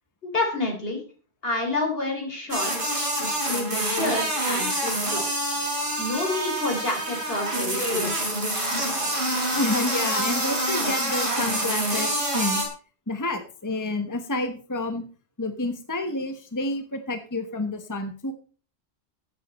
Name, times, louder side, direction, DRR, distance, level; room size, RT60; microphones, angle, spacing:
voice 1, 0.2-1.0 1.4-3.0 3.4-5.5 6.0-8.3, left 2 dB, 65° left, 3 dB, 3.7 m, -29 dB
sound 1, 2.5-12.7, right 1 dB, 55° right, 3.8 m, -26 dB
voice 2, 9.5-12.6 13.1-15.0 15.4-18.3, left 2 dB, 20° left, 8 dB, 1.1 m, -29 dB
13.0 x 8.9 x 4.2 m, 0.38 s
omnidirectional pair, 1.1 m